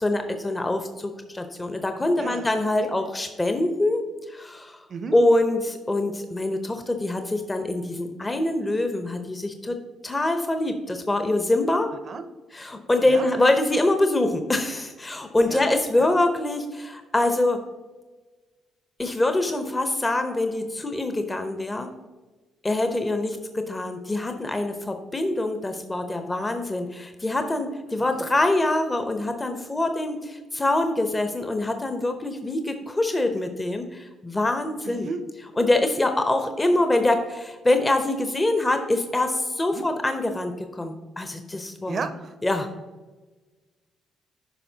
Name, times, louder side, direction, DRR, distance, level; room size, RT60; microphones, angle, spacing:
voice 1, 0.0-4.8 5.1-9.8 10.0-11.9 12.5-17.6 19.0-21.9 22.6-35.1 35.6-42.0 42.4-42.7, left 2 dB, 20° left, 6 dB, 0.8 m, -24 dB
voice 2, 34.8-35.2 39.7-39.9 41.9-42.3, right 5 dB, 50° right, 10 dB, 0.7 m, -34 dB
9.9 x 5.4 x 2.8 m, 1.2 s
hypercardioid pair, 50°, 0 cm